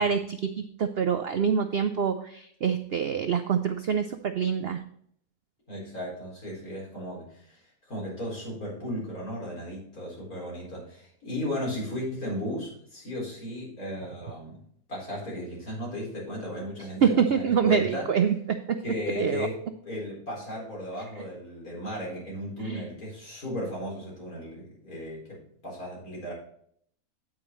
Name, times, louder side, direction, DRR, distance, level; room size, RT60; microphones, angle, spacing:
voice 1, 0.0-4.8 17.0-19.5 22.6-22.9, right 7 dB, 65° right, 8 dB, 0.6 m, -26 dB
voice 2, 5.7-14.6 14.9-18.1 18.8-26.3, equal, 65° left, -4 dB, 4.7 m, -35 dB
9.0 x 8.7 x 3.1 m, 0.65 s
omnidirectional pair, 1.6 m